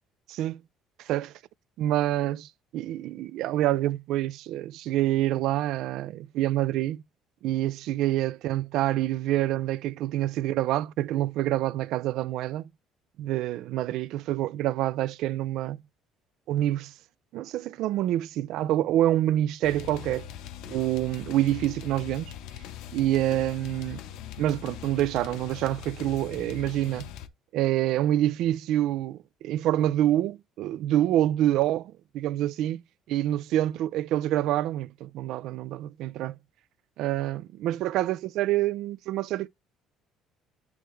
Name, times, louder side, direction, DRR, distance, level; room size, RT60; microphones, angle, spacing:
voice 1, 0.3-0.6 1.0-1.3 1.8-7.0 7.4-12.7 13.2-15.8 16.5-16.9 17.3-20.3 20.7-22.3 22.9-24.0 24.4-27.1 27.5-32.8 33.1-36.4 37.0-39.5, right 13 dB, 70° right, 0.3 m, -27 dB
sound 1, 19.6-27.3, left 10 dB, 75° left, 0.6 m, -41 dB
9.2 x 3.5 x 3.1 m
cardioid pair, 155°, 0 cm